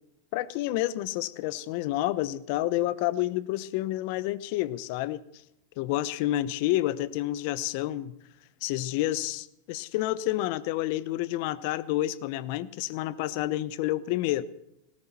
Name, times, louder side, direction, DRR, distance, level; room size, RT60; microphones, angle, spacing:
voice 1, 0.3-5.2 5.8-8.1 8.6-14.4, left 15 dB, 60° left, 0.8 m, -29 dB
18.5 x 17.0 x 4.3 m
hypercardioid pair, 105°, 0 cm